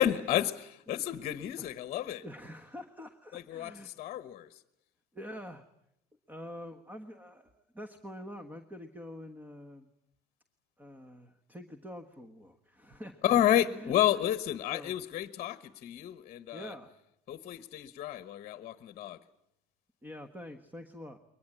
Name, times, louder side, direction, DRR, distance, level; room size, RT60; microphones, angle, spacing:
voice 1, 0.0-2.2 3.3-4.6 13.2-16.7 17.3-19.2, left 11 dB, 40° left, 1.2 m, -30 dB
voice 2, 2.2-4.0 5.1-5.6 6.3-9.9 10.8-13.2 13.7-14.2 14.7-15.0 16.5-16.9 20.0-21.2, equal, 10° right, 1.4 m, -46 dB
22.5 x 20.0 x 9.8 m
cardioid pair, 135°, 18 cm